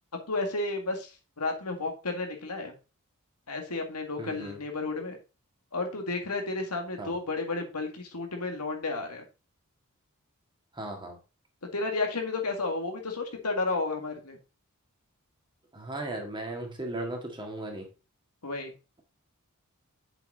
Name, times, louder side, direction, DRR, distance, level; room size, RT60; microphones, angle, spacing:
voice 1, 0.3-2.7 3.5-5.2 5.7-9.2 11.7-14.4 18.4-18.7, left 3 dB, 90° left, 4 dB, 2.0 m, -32 dB
voice 2, 4.2-4.6 7.0-7.2 10.7-11.2 15.7-17.9, right 1 dB, 20° right, 2 dB, 2.0 m, -36 dB
7.5 x 5.5 x 3.9 m, 0.31 s
head